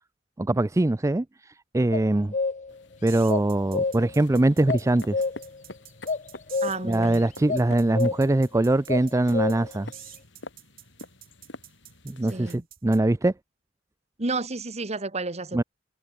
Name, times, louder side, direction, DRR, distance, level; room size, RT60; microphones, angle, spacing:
voice 1, 0.4-1.2 1.7-2.3 3.0-5.2 6.8-9.9 12.1-13.3 15.5-15.6, right 2 dB, 15° right, 0.4 m, -22 dB
sound 1, 1.9-2.8 3.3-4.2 4.7-5.6 6.1-7.1 7.5-7.7 7.9-8.4 8.9-9.8, left 4 dB, 40° left, 0.7 m, -29 dB
sound 2, 2.7-12.5, left 2 dB, 70° left, 5.2 m, -46 dB
sound 3, 3.1-13.0, right 13 dB, 50° right, 2.0 m, -47 dB
voice 2, 6.6-7.2 12.3-12.6 14.2-15.6, right 3 dB, 35° right, 1.6 m, -31 dB
head